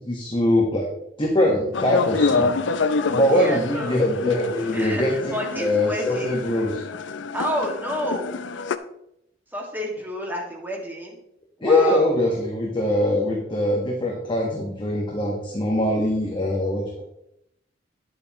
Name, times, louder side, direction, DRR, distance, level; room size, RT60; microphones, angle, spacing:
voice 1, 0.0-0.9 1.2-2.5 3.1-6.8 11.6-17.0, left 1 dB, 25° left, -2 dB, 1.4 m, -22 dB
sound 1, 1.7-8.8, left 4 dB, 80° left, 0.5 m, -27 dB
voice 2, 3.3-4.0 4.7-6.4 7.3-8.4 9.5-11.2 11.6-12.1, equal, 10° right, -1 dB, 2.0 m, -29 dB
10.5 x 8.0 x 3.0 m, 0.78 s
head